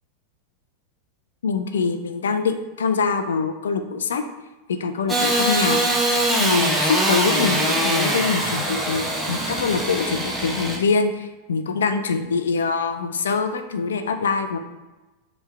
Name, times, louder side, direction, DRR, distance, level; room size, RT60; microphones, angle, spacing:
voice 1, 1.4-4.2 4.7-5.8 6.4-14.6, left 5 dB, 65° left, 7 dB, 0.4 m, -24 dB
Engine starting / Sawing, 5.1-10.8, right 1 dB, 10° right, 0.8 m, -22 dB
4.4 x 3.3 x 3.2 m, 1.1 s
figure-of-eight pair, 90°, 0 cm